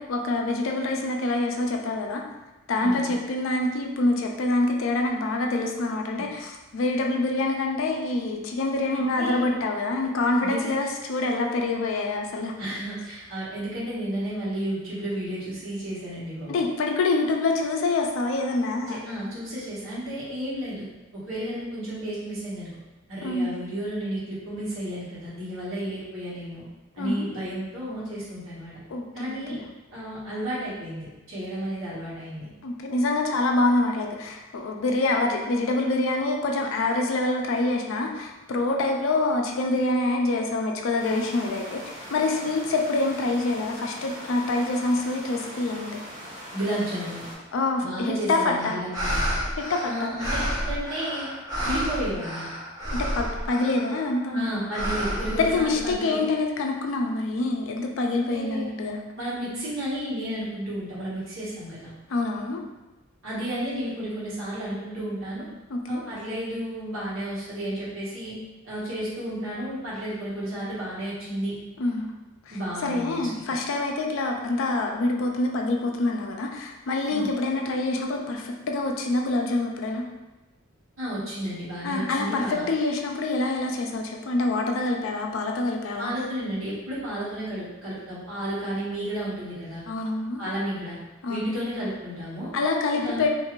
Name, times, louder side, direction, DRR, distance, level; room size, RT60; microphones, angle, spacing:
voice 1, 0.0-2.2 2.7-12.5 16.5-19.0 23.2-23.5 27.0-27.3 28.9-29.6 32.6-41.8 42.1-46.0 47.5-48.8 49.6-50.2 52.9-54.5 55.3-59.0 62.1-62.6 65.7-66.0 71.8-72.1 72.8-80.0 81.8-86.1 89.9-90.4 91.2-91.6 92.5-93.3, left 2 dB, 65° left, 2 dB, 0.4 m, -26 dB
voice 2, 2.8-3.2 6.2-6.3 8.9-9.5 10.4-10.7 12.6-16.6 18.9-20.9 21.1-22.7 23.1-26.6 26.9-28.8 29.1-29.6 29.9-32.5 46.5-47.2 47.8-49.3 49.8-51.3 51.6-52.5 54.3-56.3 58.2-58.7 59.2-61.9 63.2-65.4 65.9-68.3 68.6-71.6 72.5-73.2 77.1-77.3 81.0-82.6 86.0-89.8 90.4-91.0 91.3-92.5 92.9-93.2, right 1 dB, 70° right, -8 dB, 1.2 m, -32 dB
sound 1, 41.0-47.3, equal, 45° right, 1.4 m, -41 dB
sound 2, 48.6-54.1 54.7-56.1, equal, 20° right, 1.1 m, -30 dB
2.6 x 2.4 x 3.0 m, 1.1 s
head